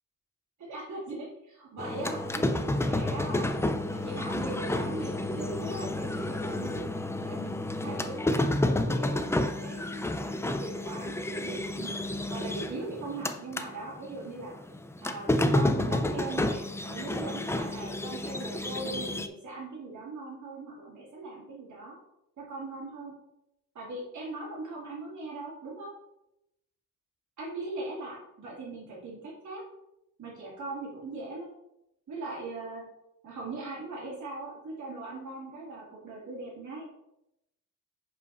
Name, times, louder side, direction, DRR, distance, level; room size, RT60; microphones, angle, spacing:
voice 1, 0.6-3.5 3.9-6.8 7.2-12.0 12.3-14.5 15.0-21.9 22.4-23.1 23.7-25.9 27.4-29.6 30.2-31.5 32.1-32.8 33.2-36.8, right 2 dB, 60° right, -6 dB, 2.4 m, -40 dB
sound 1, 1.8-13.7 14.0-19.3, left 1 dB, 10° left, 0.3 m, -30 dB
5.5 x 4.8 x 5.4 m, 0.86 s
wide cardioid pair, 165°, 32 cm